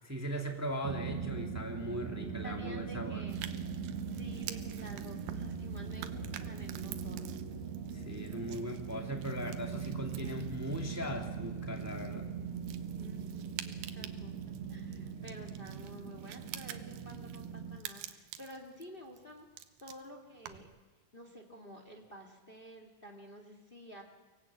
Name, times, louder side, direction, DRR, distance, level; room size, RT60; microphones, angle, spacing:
voice 1, 0.0-3.2 7.9-12.3, equal, 5° right, 2 dB, 1.4 m, -39 dB
sound 1, 0.8-17.8, right 6 dB, 55° right, 2.7 m, -41 dB
voice 2, 2.4-3.4 4.1-7.3 10.2-10.5 13.0-19.5 19.8-20.7 21.1-24.0, equal, 20° left, 4 dB, 1.5 m, -51 dB
sound 2, 3.3-20.8, right 12 dB, 90° right, 2.7 m, -49 dB
24.0 x 18.0 x 8.6 m, 1.3 s
omnidirectional pair, 4.0 m